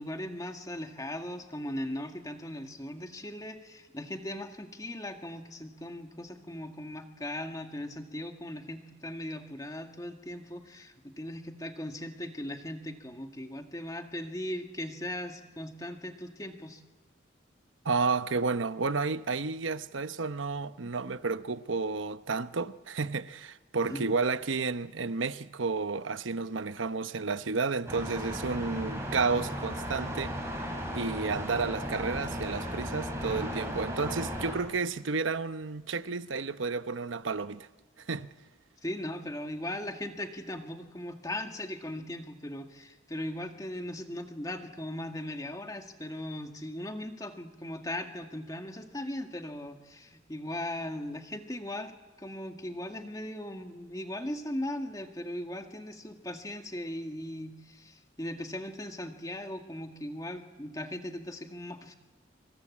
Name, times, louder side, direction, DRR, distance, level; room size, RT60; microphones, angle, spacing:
voice 1, 0.0-16.8 23.8-24.1 38.8-61.9, left 1 dB, 20° left, 2.0 m, -38 dB
voice 2, 17.8-37.7 38.1-38.3, right 4 dB, 85° right, 0.9 m, -31 dB
sound 1, 27.9-34.5, equal, 15° right, 6.5 m, -36 dB
26.5 x 26.0 x 8.6 m
head